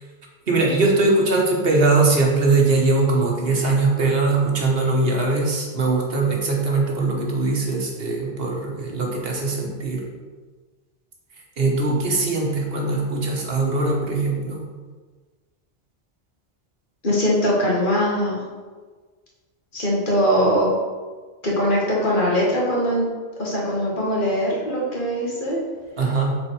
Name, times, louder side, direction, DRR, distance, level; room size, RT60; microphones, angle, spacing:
voice 1, 0.5-10.0 11.6-14.6 26.0-26.4, right 3 dB, 65° right, -1 dB, 1.4 m, -21 dB
voice 2, 17.0-18.4 19.7-20.7 21.4-23.1 23.4-25.6, equal, 50° left, -4 dB, 1.7 m, -21 dB
5.8 x 4.5 x 4.7 m, 1.4 s
omnidirectional pair, 1.1 m